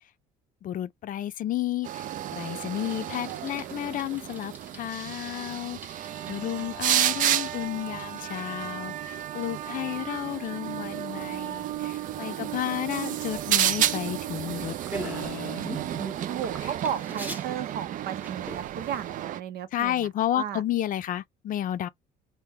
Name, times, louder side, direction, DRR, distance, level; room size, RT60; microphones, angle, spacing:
voice 1, 0.6-16.1 16.6-16.7 19.7-21.9, left 12 dB, 55° left, 0.5 m, -32 dB
sound 1, 1.8-19.4, right 12 dB, 50° right, 0.4 m, -31 dB
Bicycle, 2.7-19.2, right 1 dB, 10° right, 0.8 m, -45 dB
voice 2, 16.3-20.6, right 9 dB, 70° right, 0.7 m, -35 dB
3.3 x 2.2 x 3.5 m
cardioid pair, 110°, 17 cm